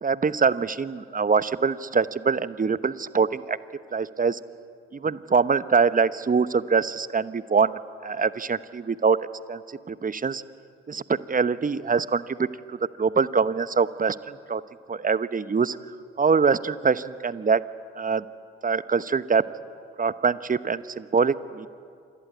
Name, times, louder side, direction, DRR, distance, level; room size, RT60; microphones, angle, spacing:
voice 1, 0.0-3.6 3.9-4.4 4.9-9.2 9.5-10.4 10.9-14.6 14.9-17.6 17.9-18.2 18.6-19.4 20.0-21.7, right 5 dB, 25° right, 15 dB, 1.0 m, -24 dB
27.0 x 20.5 x 9.6 m, 2.3 s
hypercardioid pair, 45°, 32 cm